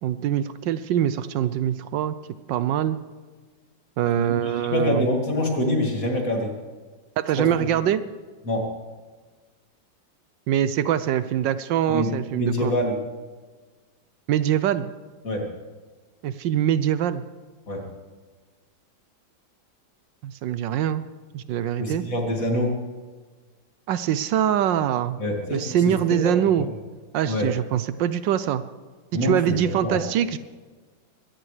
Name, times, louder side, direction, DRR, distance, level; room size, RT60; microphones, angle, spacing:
voice 1, 0.0-2.1 2.5-3.0 4.0-5.1 7.2-8.0 10.5-12.7 14.3-14.9 16.2-17.2 20.2-21.0 21.3-22.0 23.9-25.2 25.5-26.7 27.1-28.6 29.2-30.4, right 10 dB, 75° right, 13 dB, 1.3 m, -23 dB
voice 2, 4.1-6.6 7.4-7.5 8.4-8.7 11.9-13.0 15.2-15.5 17.7-17.9 21.8-22.8 25.2-25.8 26.1-26.3 26.6-26.7 27.3-27.5 29.1-30.0, left 1 dB, 45° left, 1 dB, 2.7 m, -25 dB
22.0 x 17.0 x 3.3 m, 1.4 s
omnidirectional pair, 2.1 m